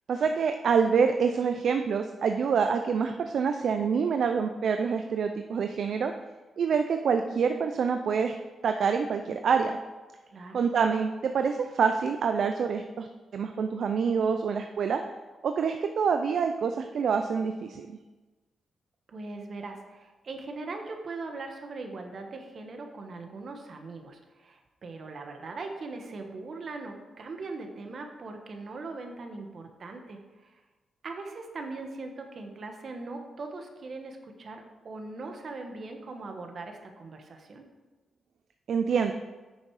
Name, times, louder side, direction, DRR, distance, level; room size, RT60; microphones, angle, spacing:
voice 1, 0.1-6.1 6.6-8.4 8.6-9.8 10.5-13.1 13.3-15.0 15.4-18.0 38.7-39.1, right 6 dB, 65° right, 6 dB, 0.5 m, -26 dB
voice 2, 10.3-10.7 19.1-30.6 31.0-37.7, right 3 dB, 50° right, 4 dB, 1.4 m, -40 dB
9.1 x 6.4 x 4.9 m, 1.2 s
cardioid pair, 115°, 0 cm